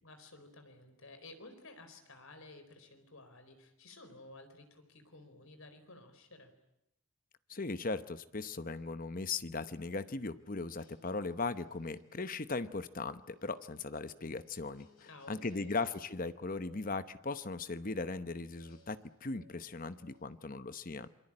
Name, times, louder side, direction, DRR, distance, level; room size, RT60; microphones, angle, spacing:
voice 1, 0.0-6.5 15.0-15.7, left 2 dB, 70° left, 8 dB, 4.4 m, -54 dB
voice 2, 7.5-14.9 15.3-21.1, left 3 dB, 40° left, 12 dB, 0.9 m, -38 dB
sound 1, 9.6-20.6, equal, 85° left, 6.7 m, -67 dB
27.5 x 23.0 x 8.8 m, 0.86 s
head